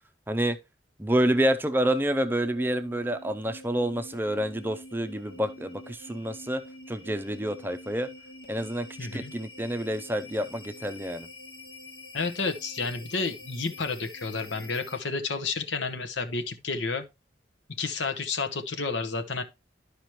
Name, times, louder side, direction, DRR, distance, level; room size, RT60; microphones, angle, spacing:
voice 1, 1.0-6.6 6.9-8.1 8.5-8.9 9.1-11.3, right 1 dB, 10° right, 0.5 m, -28 dB
sound 1, 1.7-15.3, left 1 dB, 55° left, 1.3 m, -47 dB
voice 2, 9.0-9.3 12.1-17.0 17.8-19.4, left 4 dB, 90° left, 1.1 m, -31 dB
12.0 x 5.0 x 3.1 m
head